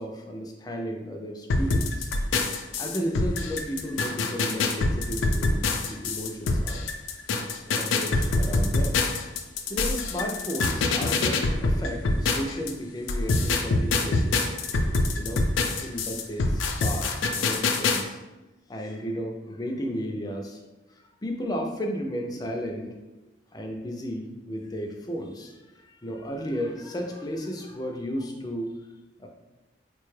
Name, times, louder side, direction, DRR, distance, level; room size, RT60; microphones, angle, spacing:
voice 1, 0.0-2.1 2.8-6.8 7.7-9.0 9.7-14.5 15.2-15.4 15.8-18.2 18.7-20.6 21.2-22.9 23.5-28.8 29.2-29.3, equal, 20° left, 2 dB, 0.4 m, -34 dB
sound 1, 1.5-12.7 13.1-18.0, left 3 dB, 85° left, 0.4 m, -25 dB
4.2 x 2.2 x 3.1 m, 1.1 s
head